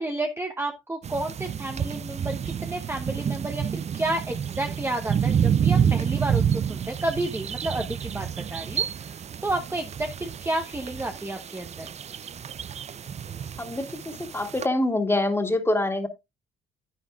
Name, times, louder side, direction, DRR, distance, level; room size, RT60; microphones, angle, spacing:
voice 1, 0.0-6.4 6.7-9.1 9.4-11.9, right 2 dB, 10° right, 0.9 m, -31 dB
sound 1, 1.0-14.7, right 8 dB, 35° right, 0.4 m, -29 dB
voice 2, 13.6-16.1, left 2 dB, 10° left, 2.0 m, -25 dB
9.7 x 9.6 x 2.3 m
cardioid pair, 90°, 20 cm